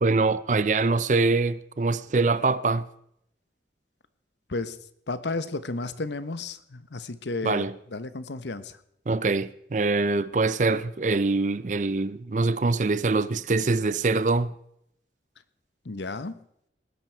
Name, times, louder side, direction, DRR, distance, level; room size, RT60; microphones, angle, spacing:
voice 1, 0.0-2.9 7.4-7.7 9.1-14.5, right 3 dB, 45° right, 0.5 m, -24 dB
voice 2, 5.1-7.6 7.9-8.8 15.8-16.4, left 3 dB, 85° left, 0.9 m, -32 dB
19.0 x 10.5 x 4.5 m
head